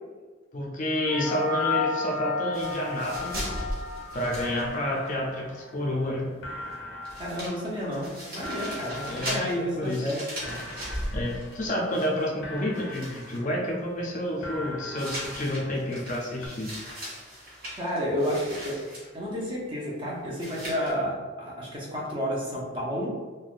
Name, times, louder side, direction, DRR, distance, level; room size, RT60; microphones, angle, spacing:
voice 1, 0.5-3.6 4.1-6.2 9.1-9.5 9.7-10.1 11.1-16.7, left 1 dB, 40° left, -2 dB, 0.4 m, -29 dB
sound 1, 0.9-5.6, left 4 dB, 75° right, 1.4 m, -32 dB
sound 2, 2.5-5.1 5.4-5.5 6.7-6.8 7.0-12.4 12.7-13.4 15.0-19.1 20.3-20.9, equal, 50° right, 1.1 m, -38 dB
sound 3, 4.0-4.1 4.4-6.1 6.4-10.2 10.4-12.1 12.4-14.1 14.4-16.2 16.4-16.5, left 1 dB, 85° left, 0.6 m, -42 dB
voice 2, 7.2-10.6 17.8-23.1, equal, 25° right, -4 dB, 0.6 m, -31 dB
3.3 x 2.1 x 2.4 m, 1.4 s
head